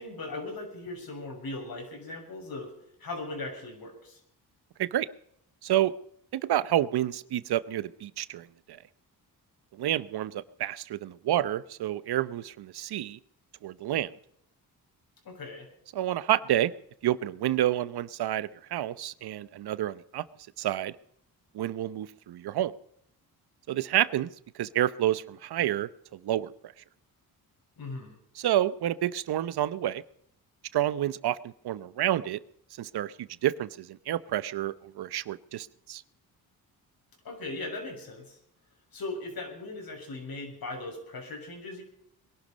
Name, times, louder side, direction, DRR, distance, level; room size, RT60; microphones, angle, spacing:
voice 1, 0.0-2.7 3.0-4.2 15.3-15.7 27.8-28.2 37.2-38.4 38.9-41.8, left 2 dB, 65° left, 2 dB, 6.9 m, -38 dB
voice 2, 5.6-5.9 6.3-8.8 9.8-13.2 13.6-14.1 15.9-16.7 17.0-20.2 20.6-20.9 21.5-22.7 23.7-24.3 24.5-26.7 28.4-30.0 30.7-32.4 32.8-36.0, right 12 dB, 75° right, 17 dB, 0.8 m, -29 dB
22.0 x 11.5 x 5.2 m, 0.72 s
cardioid pair, 75°, 39 cm